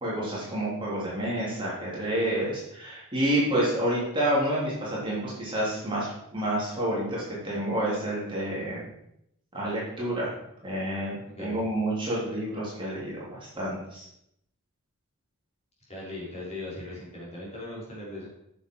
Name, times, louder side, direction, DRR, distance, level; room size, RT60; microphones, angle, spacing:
voice 1, 0.0-8.8 9.5-10.3 10.6-14.1, right 1 dB, 20° right, -6 dB, 3.3 m, -29 dB
voice 2, 11.3-11.7 15.9-18.3, left 2 dB, 30° left, -6 dB, 4.0 m, -39 dB
9.6 x 7.0 x 4.7 m, 0.78 s
head